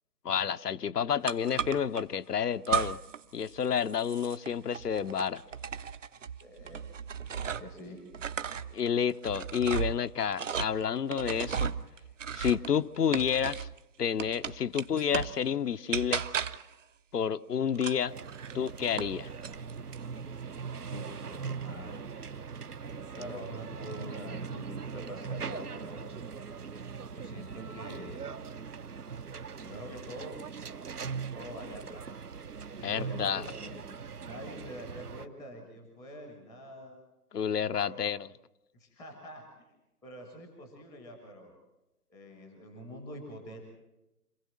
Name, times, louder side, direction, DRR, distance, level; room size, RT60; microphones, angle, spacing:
voice 1, 0.2-3.0 3.3-5.4 8.7-11.7 12.3-13.7 14.0-16.2 17.1-18.1 18.5-19.3 32.8-33.4 37.3-38.2, left 8 dB, 80° left, 0.7 m, -30 dB
sound 1, 1.3-2.0 2.6-3.2 3.5-7.8 8.1-13.8 14.2-15.4 15.9-16.7 17.7-19.1 19.4-20.0, right 7 dB, 55° right, 0.8 m, -35 dB
voice 2, 6.4-6.9 7.3-8.0 20.9-22.0 23.2-26.1 27.1-28.4 29.6-30.4 31.3-32.0 32.7-33.8 34.2-37.0 37.7-38.1 38.7-39.7 40.0-41.6 42.1-43.6, equal, ahead, 0.6 m, -45 dB
sound 2, 18.1-35.3, right 6 dB, 75° right, 1.2 m, -41 dB
26.0 x 15.5 x 7.5 m
figure-of-eight pair, 145°, 47 cm